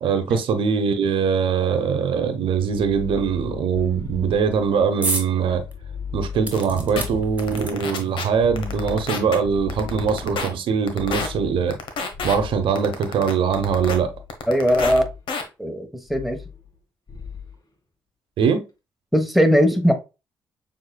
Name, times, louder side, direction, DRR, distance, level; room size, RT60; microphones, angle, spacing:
voice 1, 0.0-5.6 6.1-11.8 12.2-14.1 18.4-18.6, right 6 dB, 75° right, 0.9 m, -22 dB
sound 1, 2.5-4.9 5.4-7.8 8.3-10.5 10.9-12.8 13.4-14.4 14.7-15.2 16.1-16.8 17.1-17.5, left 6 dB, 45° left, 1.9 m, -37 dB
sound 2, 5.0-5.3 5.7-5.8 6.4-8.1 9.0-9.1 9.4-9.5, right 2 dB, 15° right, 1.6 m, -29 dB
sound 3, 6.5-6.6 7.0-7.1 7.4-8.2 8.6-9.4 9.7-10.5 10.9-11.3 11.7-12.4 12.8-14.0 14.3-15.0 15.3-15.4, left 5 dB, 70° left, 1.1 m, -28 dB
voice 2, 14.5-15.0 15.6-16.4 19.1-19.9, equal, ahead, 1.2 m, -19 dB
6.5 x 3.5 x 2.3 m
supercardioid pair, 60°, 9 cm